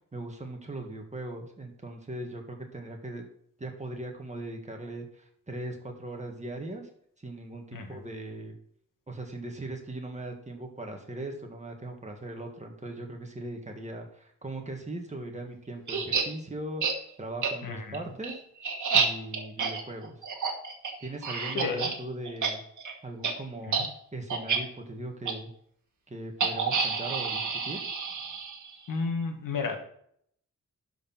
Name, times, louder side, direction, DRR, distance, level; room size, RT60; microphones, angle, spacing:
voice 1, 0.1-3.2 3.6-6.9 7.2-8.5 9.1-18.4 18.9-20.1 21.0-22.6 23.0-23.8 24.1-25.5 26.1-27.8, right 1 dB, 20° right, 2 dB, 1.8 m, -39 dB
sound 1, 15.9-16.2 16.8-16.9 17.4-17.5 17.9-21.9 22.2-22.5 22.8-22.9 23.2-23.3 23.7-23.9 24.3-24.6 25.2-25.3 26.4-28.7, right 5 dB, 65° right, 1.6 m, -29 dB
voice 2, 17.6-18.0 21.5-21.9 23.7-23.9 28.9-29.8, left 4 dB, 75° left, 4 dB, 1.8 m, -32 dB
11.5 x 4.7 x 5.8 m, 0.67 s
wide cardioid pair, 140°, 33 cm